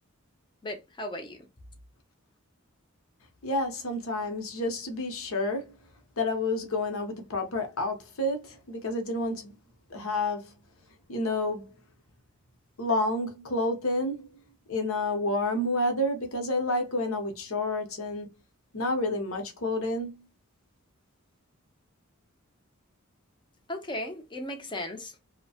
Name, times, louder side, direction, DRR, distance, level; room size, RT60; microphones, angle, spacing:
voice 1, 0.6-1.4 23.7-25.1, left 1 dB, 20° left, 0.6 m, -36 dB
voice 2, 3.4-5.8 6.2-9.6 9.9-10.5 11.1-11.7 12.8-14.3 14.7-18.3 18.7-20.3, left 2 dB, 70° left, 0.8 m, -29 dB
2.8 x 2.1 x 2.8 m
head